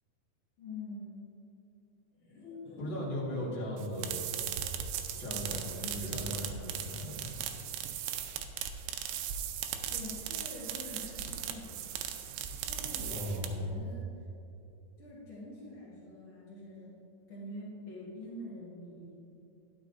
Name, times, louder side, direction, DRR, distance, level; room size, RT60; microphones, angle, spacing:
voice 1, 0.6-1.2 2.1-2.9 9.2-9.3 9.9-11.8 12.6-14.1 15.0-16.9 17.3-19.3, left 1 dB, 90° left, -7 dB, 1.1 m, -46 dB
voice 2, 2.8-4.3 5.2-7.3 13.1-13.7, equal, 55° left, -6 dB, 1.4 m, -37 dB
sound 1, 3.8-13.7, right 9 dB, 85° right, 2.8 m, -38 dB
12.0 x 10.0 x 2.6 m, 2.8 s
omnidirectional pair, 5.0 m